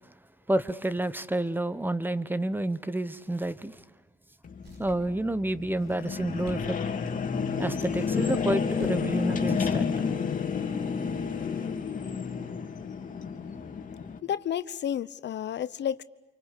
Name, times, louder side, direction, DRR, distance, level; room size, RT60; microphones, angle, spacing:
voice 1, 0.5-3.8 4.8-6.8 7.6-9.9, right 1 dB, 10° right, 15 dB, 1.2 m, -29 dB
sound 1, 4.4-14.2, left 6 dB, 40° left, 3.2 m, -30 dB
sound 2, 4.6-5.2 5.7-6.6 7.0-7.1 7.8-9.0 9.7-10.1, right 3 dB, 60° right, 5.0 m, -51 dB
voice 2, 14.2-16.0, left 9 dB, 60° left, 15 dB, 0.9 m, -31 dB
28.0 x 24.5 x 8.4 m, 1.0 s
cardioid pair, 90°, 20 cm